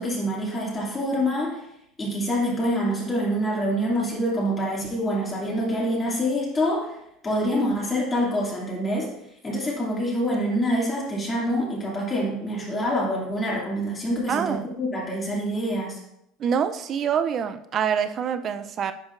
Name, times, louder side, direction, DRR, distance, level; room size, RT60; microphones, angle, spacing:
voice 1, 0.0-1.6 2.0-7.0 7.2-9.1 9.4-16.0, equal, 20° left, -4 dB, 2.5 m, -26 dB
voice 2, 14.3-14.7 16.4-18.9, right 7 dB, 40° right, 10 dB, 0.5 m, -25 dB
10.0 x 5.1 x 2.6 m, 0.79 s
supercardioid pair, 115°, 0 cm